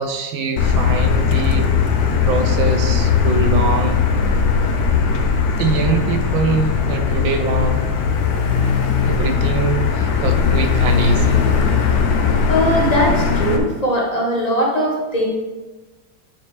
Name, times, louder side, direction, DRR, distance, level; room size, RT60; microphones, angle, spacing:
voice 1, 0.0-1.7 2.2-4.0 5.6-7.8 9.0-11.4, right 4 dB, 75° right, 6 dB, 1.4 m, -23 dB
Motor vehicle (road), 0.6-13.6, left 6 dB, 65° left, 1.0 m, -18 dB
voice 2, 12.5-15.3, equal, 25° left, -3 dB, 1.0 m, -19 dB
9.6 x 4.6 x 3.4 m, 1.2 s
omnidirectional pair, 2.2 m